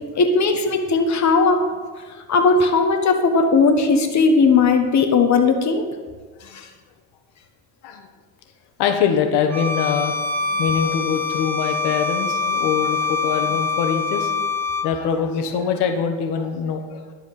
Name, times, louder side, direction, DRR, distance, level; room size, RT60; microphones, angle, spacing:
voice 1, 0.1-1.6 2.3-5.8 6.5-6.7, left 4 dB, 45° left, 4 dB, 1.5 m, -17 dB
voice 2, 8.8-10.1 10.5-14.3 14.8-17.0, left 7 dB, 75° left, 5 dB, 1.6 m, -23 dB
Bowed string instrument, 9.5-14.9, left 4 dB, 5° left, 1.9 m, -24 dB
11.0 x 5.0 x 8.2 m, 1.4 s
supercardioid pair, 70°, 41 cm